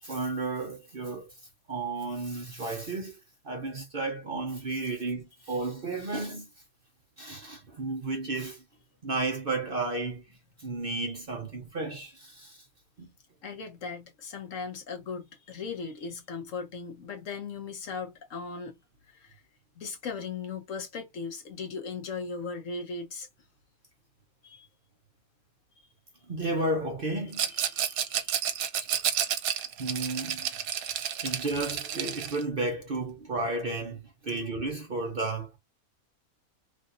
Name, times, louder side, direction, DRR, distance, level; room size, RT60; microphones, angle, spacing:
voice 1, 0.0-1.3 1.7-3.1 3.4-6.5 7.2-8.6 9.0-10.2 10.6-12.6 26.3-27.5 29.8-30.5 31.2-34.0 34.2-35.5, right 2 dB, 45° right, 0.9 m, -32 dB
voice 2, 13.4-18.8 19.2-19.3 19.8-23.3 24.4-24.7 27.5-28.3 31.3-31.4, left 5 dB, 60° left, 1.2 m, -38 dB
Rattle, 27.3-32.4, right 9 dB, 75° right, 1.0 m, -31 dB
3.2 x 2.6 x 2.4 m
omnidirectional pair, 1.5 m